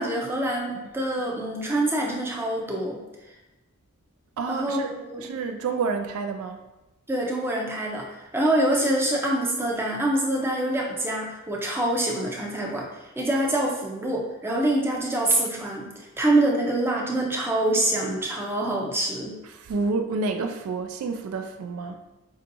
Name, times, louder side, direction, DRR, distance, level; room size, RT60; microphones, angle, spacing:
voice 1, 0.0-3.0 4.5-5.2 7.1-8.1 8.3-12.8 13.2-19.4, right 1 dB, 10° right, -2 dB, 0.5 m, -25 dB
voice 2, 4.4-4.9 5.2-6.6 19.5-22.0, right 4 dB, 70° right, 6 dB, 0.3 m, -29 dB
4.4 x 2.7 x 2.6 m, 1.0 s
head